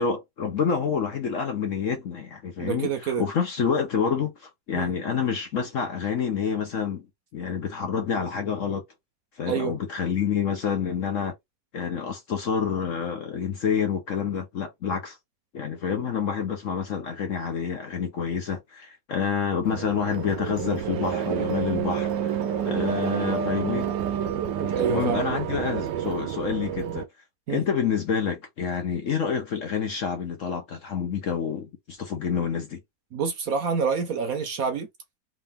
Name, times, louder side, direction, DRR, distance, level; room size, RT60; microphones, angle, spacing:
voice 1, 0.0-7.1 7.3-8.8 9.4-11.3 11.7-15.2 15.5-22.4 22.6-23.9 24.9-27.1 27.5-32.8, left 6 dB, 55° left, 0.9 m, -28 dB
voice 2, 2.6-3.2 4.8-4.9 9.5-9.8 24.7-25.2 27.5-27.6 33.1-34.9, right 6 dB, 60° right, 1.0 m, -27 dB
sound 1, 19.7-27.0, right 8 dB, 75° right, 1.3 m, -28 dB
3.7 x 2.7 x 3.5 m
omnidirectional pair, 1.9 m